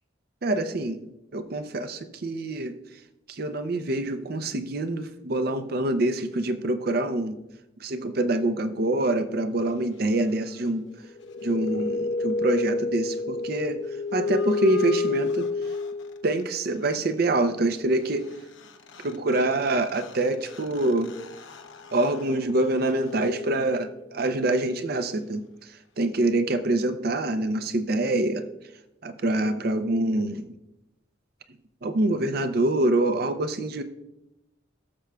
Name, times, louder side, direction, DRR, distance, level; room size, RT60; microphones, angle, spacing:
voice 1, 0.4-1.0 1.3-2.7 3.3-7.4 7.8-10.9 11.4-13.8 14.1-15.5 16.2-18.3 19.0-21.2 21.9-28.5 29.0-30.5 31.8-33.8, right 2 dB, 55° right, 10 dB, 0.6 m, -25 dB
sound 1, 11.0-16.4 18.3-18.4 18.6-24.1, left 3 dB, 90° left, 0.8 m, -31 dB
18.0 x 6.9 x 2.3 m, 0.92 s
head